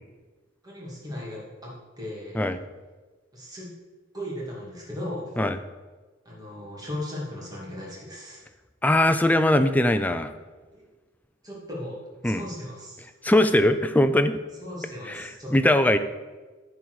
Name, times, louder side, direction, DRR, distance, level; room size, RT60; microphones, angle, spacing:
voice 1, 0.6-2.4 3.3-3.7 4.1-5.4 6.2-8.4 10.7-10.8 11.4-12.0 12.2-13.0 14.6-15.8, left 1 dB, 20° right, -4 dB, 2.5 m, -37 dB
voice 2, 8.8-10.3 12.2-12.4 13.2-14.4 15.1-16.0, left 1 dB, 10° left, 9 dB, 0.4 m, -21 dB
10.5 x 4.7 x 6.3 m, 1.3 s
head